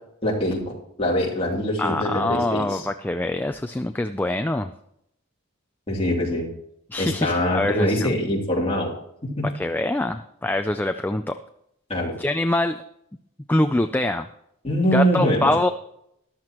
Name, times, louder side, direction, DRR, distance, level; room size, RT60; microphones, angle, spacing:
voice 1, 0.2-0.6 1.0-2.9 5.9-6.5 7.0-8.9 9.2-9.5 11.9-12.1 14.6-15.5, equal, 25° left, -3 dB, 2.8 m, -23 dB
voice 2, 1.8-4.7 6.9-8.1 9.5-11.4 12.2-12.8 13.5-14.3 14.9-15.7, left 1 dB, 10° left, 8 dB, 0.3 m, -24 dB
13.5 x 12.5 x 3.0 m, 0.75 s
head